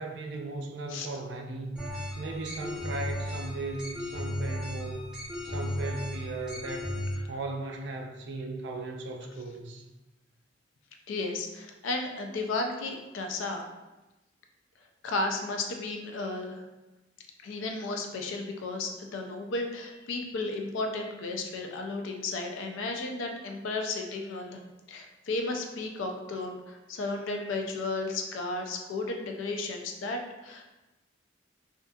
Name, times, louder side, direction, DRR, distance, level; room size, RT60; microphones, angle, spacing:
voice 1, 0.0-1.9 2.2-5.0 5.4-7.0 7.3-9.8, right 2 dB, 60° right, 2 dB, 0.4 m, -37 dB
sound 1, 1.8-7.1, left 1 dB, 5° right, 0.6 m, -35 dB
voice 2, 11.1-13.6 15.0-16.6 17.4-24.6 24.9-30.6, left 3 dB, 90° left, 3 dB, 0.4 m, -34 dB
2.6 x 2.4 x 2.2 m, 1.0 s
head